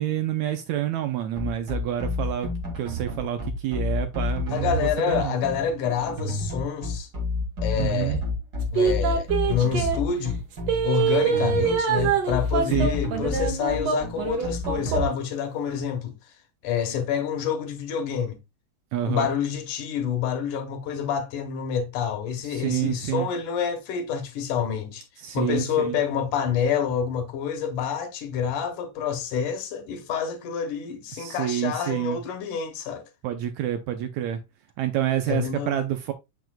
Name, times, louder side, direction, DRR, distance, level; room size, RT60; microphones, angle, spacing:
voice 1, 0.0-2.5 2.8-5.4 7.8-8.2 12.7-12.9 18.9-19.3 22.5-23.3 25.2-26.0 31.1-32.2 33.2-34.4 34.8-36.1, right 11 dB, 75° right, 1.7 m, -28 dB
sound 1, 1.4-15.1, left 2 dB, 40° right, 1.6 m, -29 dB
voice 2, 4.5-7.1 7.6-8.2 8.7-10.4 10.8-16.1 16.6-18.4 19.0-25.0 25.3-33.0 35.3-35.8, left 7 dB, 75° left, 2.6 m, -28 dB
sound 2, 8.8-10.0 10.7-15.2 15.6-15.7, right 6 dB, 60° right, 2.2 m, -24 dB
7.1 x 6.1 x 2.2 m
omnidirectional pair, 3.7 m